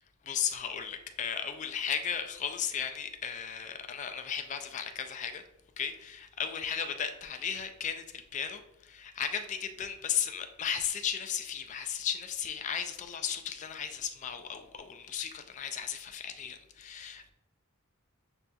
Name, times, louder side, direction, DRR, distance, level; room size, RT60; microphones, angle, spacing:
voice 1, 0.3-5.4 5.8-8.0 8.3-17.3, left 8 dB, 35° left, 0.3 m, -35 dB
6.7 x 2.5 x 2.3 m
head